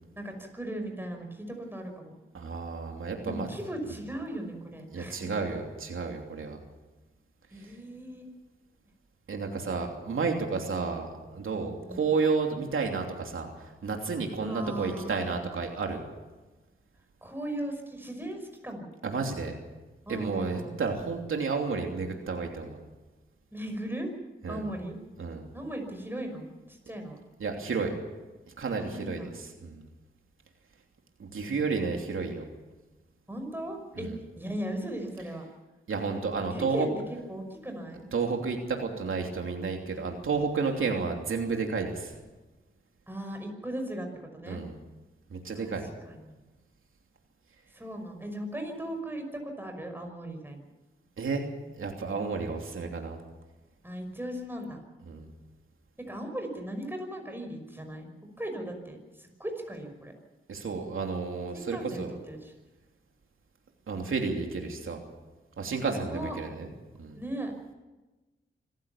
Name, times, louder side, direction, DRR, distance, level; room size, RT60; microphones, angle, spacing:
voice 1, 0.2-2.1 3.3-5.3 7.5-8.4 10.5-10.9 11.8-12.1 14.4-15.4 17.2-18.9 20.1-20.8 23.5-24.1 24.5-25.0 25.5-27.2 28.9-29.3 31.3-31.6 33.3-34.1 34.3-35.4 36.5-36.9 37.3-38.1 43.1-44.6 45.6-45.7 46.0-46.3 47.7-50.6 53.8-54.8 56.1-58.1 58.4-60.1 61.5-62.5 65.9-66.4 67.2-67.5, right 1 dB, 10° right, 3 dB, 5.7 m, -37 dB
voice 2, 2.3-3.5 4.9-6.6 9.3-13.5 13.8-16.0 19.0-19.6 20.1-22.8 24.4-24.7 25.2-25.4 27.4-27.9 28.6-29.3 29.6-29.8 31.2-32.4 34.0-34.1 35.9-36.9 38.1-42.1 44.5-44.7 45.3-45.8 51.2-51.4 51.7-53.2 55.1-55.3 60.5-62.1 63.9-65.0 65.6-66.7 67.0-67.2, right 4 dB, 85° right, 2 dB, 3.0 m, -31 dB
26.0 x 15.0 x 7.3 m, 1.1 s
wide cardioid pair, 90°, 21 cm